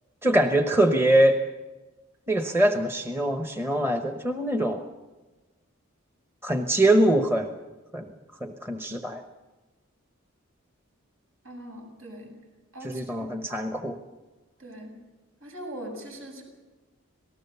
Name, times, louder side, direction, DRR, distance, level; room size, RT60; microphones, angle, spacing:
voice 1, 0.2-1.4 2.3-4.8 6.4-7.5 7.9-8.1 8.4-9.2 12.8-14.0, right 1 dB, 10° right, 6 dB, 1.0 m, -23 dB
voice 2, 11.4-12.3 12.7-13.5 14.6-15.0 15.4-16.4, right 1 dB, 75° right, 2 dB, 7.7 m, -41 dB
26.5 x 18.5 x 6.9 m, 1.2 s
head